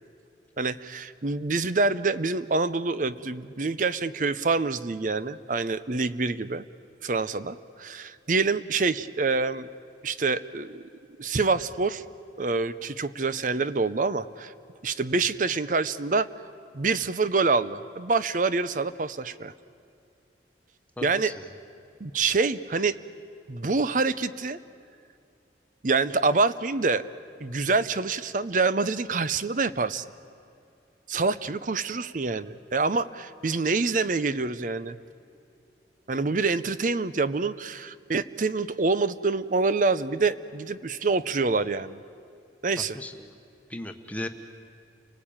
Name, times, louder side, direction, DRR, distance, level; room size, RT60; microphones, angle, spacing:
voice 1, 0.6-6.6 7.0-9.7 10.0-10.8 11.2-12.0 12.4-14.5 14.8-16.3 16.7-19.5 21.0-21.3 22.0-23.0 23.5-24.6 25.8-27.0 27.4-30.0 31.1-35.0 36.1-42.0 42.6-43.0, right 4 dB, 45° right, 14 dB, 0.7 m, -26 dB
voice 2, 21.0-21.5 42.9-43.4 43.7-44.3, left 1 dB, 10° left, 6 dB, 1.2 m, -37 dB
29.5 x 19.5 x 8.8 m, 2.6 s
head